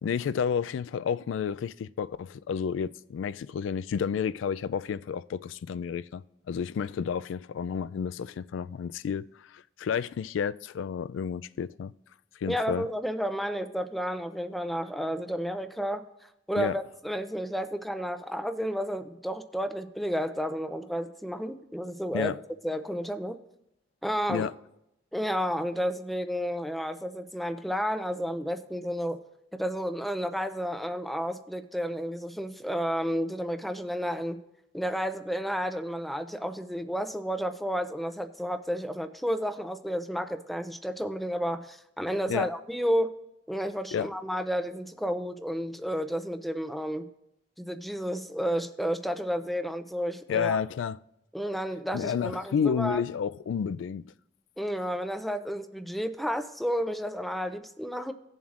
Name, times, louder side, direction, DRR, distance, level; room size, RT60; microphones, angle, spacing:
voice 1, 0.0-11.9 12.4-12.9 16.6-16.8 22.1-22.4 24.3-24.5 42.3-42.5 43.9-44.1 50.3-51.0 51.9-54.0, left 7 dB, 80° left, 0.3 m, -31 dB
voice 2, 12.5-16.0 16.5-22.3 22.6-23.4 24.0-24.5 25.1-29.2 29.5-34.4 34.7-43.1 43.5-47.1 47.6-50.6 51.3-53.0 54.6-58.1, equal, ahead, 0.5 m, -31 dB
18.0 x 7.2 x 2.5 m
head